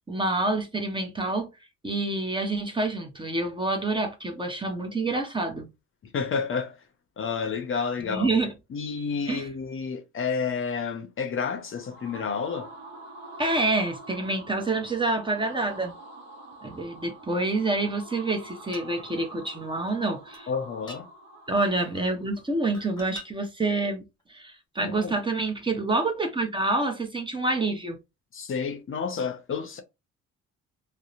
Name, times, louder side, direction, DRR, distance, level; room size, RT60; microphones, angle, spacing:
voice 1, 0.0-1.5 1.8-5.7 8.1-8.5 9.3-9.4 13.4-15.9 16.6-20.5 21.5-24.0 24.3-28.0, right 2 dB, 15° right, 0.6 m, -27 dB
voice 2, 6.0-6.8 7.2-8.3 8.7-12.7 20.5-21.1 24.8-25.2 28.3-29.8, left 5 dB, 45° left, 0.6 m, -30 dB
sound 1, 11.6-22.4, right 2 dB, 65° right, 0.9 m, -46 dB
sound 2, 18.7-18.9 19.9-20.0 20.3-20.4 20.9-21.0 22.0-22.2 22.7-23.3 24.2-24.3, equal, 15° left, 1.0 m, -44 dB
2.7 x 2.0 x 2.4 m
cardioid pair, 90°, 30 cm